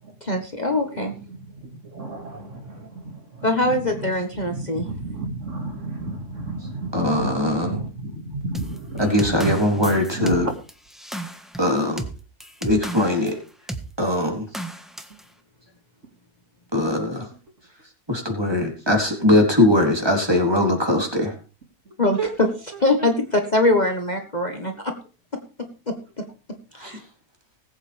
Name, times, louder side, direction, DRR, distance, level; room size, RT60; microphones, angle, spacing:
voice 1, 0.2-1.1 3.4-4.9 22.0-22.5 22.8-24.9 25.9-26.2 26.8-27.0, left 2 dB, 30° left, 4 dB, 1.6 m, -22 dB
voice 2, 1.6-3.8 4.4-9.8 10.1-10.4 22.2-22.3 23.0-23.1, right 2 dB, 50° right, 4 dB, 2.5 m, -32 dB
voice 3, 6.9-7.8 9.0-10.5 11.6-12.0 12.6-13.4 14.0-14.5 16.7-17.3 18.1-21.4 26.8-27.0, left 1 dB, 15° right, 2 dB, 3.7 m, -21 dB
sound 1, 8.5-13.3 13.7-13.9 14.5-15.2, right 1 dB, ahead, 1.4 m, -33 dB
20.0 x 8.6 x 3.5 m, 0.37 s
omnidirectional pair, 1.6 m